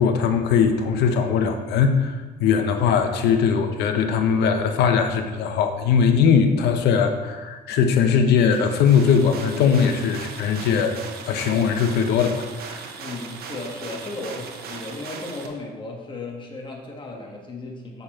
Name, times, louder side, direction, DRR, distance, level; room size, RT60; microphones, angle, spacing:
voice 1, 0.0-11.0 11.2-12.8, left 6 dB, 80° left, 6 dB, 0.9 m, -20 dB
sound 1, 8.5-15.5, right 6 dB, 65° right, 1.0 m, -38 dB
voice 2, 13.0-18.0, left 2 dB, 30° left, 0 dB, 1.4 m, -35 dB
6.9 x 6.7 x 4.4 m, 1.3 s
cardioid pair, 110°, 17 cm